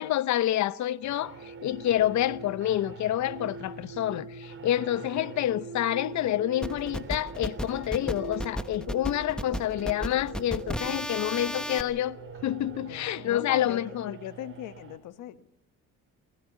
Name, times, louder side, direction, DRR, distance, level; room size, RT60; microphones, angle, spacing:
voice 1, 0.0-12.2 12.4-14.1, left 12 dB, 65° left, 0.8 m, -28 dB
sound 1, 1.0-15.0, right 4 dB, 40° right, 4.4 m, -43 dB
sound 2, 6.6-11.8, equal, 5° left, 1.0 m, -34 dB
voice 2, 12.8-15.6, left 13 dB, 80° left, 1.0 m, -40 dB
22.0 x 15.0 x 8.1 m
cardioid pair, 105°, 31 cm